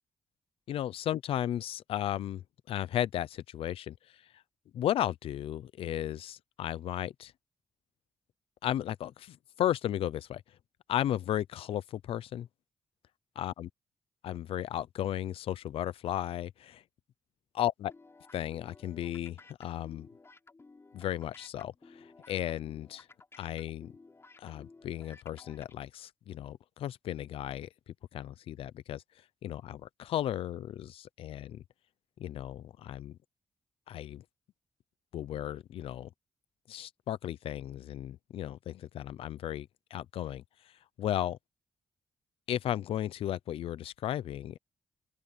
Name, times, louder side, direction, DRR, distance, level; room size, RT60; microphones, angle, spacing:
voice 1, 0.7-4.4 4.7-7.3 8.6-10.6 10.9-12.5 13.4-13.7 14.2-16.8 17.5-17.9 18.3-20.1 20.9-23.1 23.4-23.9 24.4-31.6 32.2-33.2 33.9-34.2 35.1-36.1 36.7-41.4 42.5-44.6, left 11 dB, 85° left, 0.6 m, -35 dB
sound 1, 17.9-25.7, left 3 dB, 25° left, 5.6 m, -56 dB
open air
cardioid pair, 100°, 9 cm